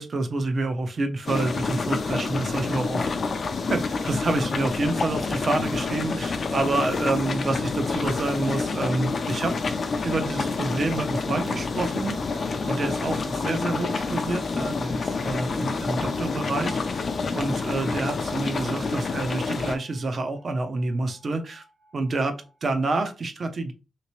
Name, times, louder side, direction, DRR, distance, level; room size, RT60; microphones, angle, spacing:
voice 1, 0.0-3.3 3.7-9.5 10.0-16.9 17.3-21.6 21.9-23.7, right 2 dB, 40° right, 8 dB, 0.5 m, -28 dB
sound 1, 1.2-19.8, left 4 dB, 45° left, 0.4 m, -28 dB
sound 2, 11.7-22.8, right 1 dB, 70° right, 1.2 m, -51 dB
3.2 x 2.9 x 3.0 m, 0.32 s
wide cardioid pair, 155°, 0 cm